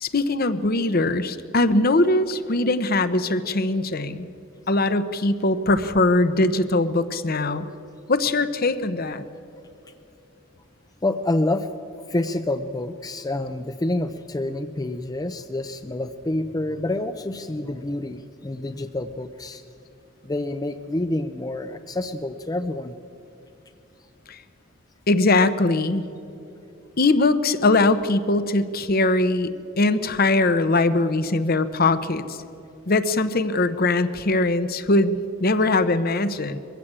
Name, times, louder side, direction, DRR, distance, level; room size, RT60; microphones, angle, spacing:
voice 1, 0.0-4.3 4.7-7.7 8.1-9.2 24.3-24.4 25.1-26.0 27.0-29.5 29.8-32.4 32.9-36.6, left 2 dB, 50° left, 12 dB, 0.9 m, -21 dB
voice 2, 11.0-11.7 12.1-19.6 20.2-23.0, left 1 dB, 20° left, 9 dB, 0.5 m, -27 dB
22.5 x 15.5 x 8.8 m, 2.8 s
head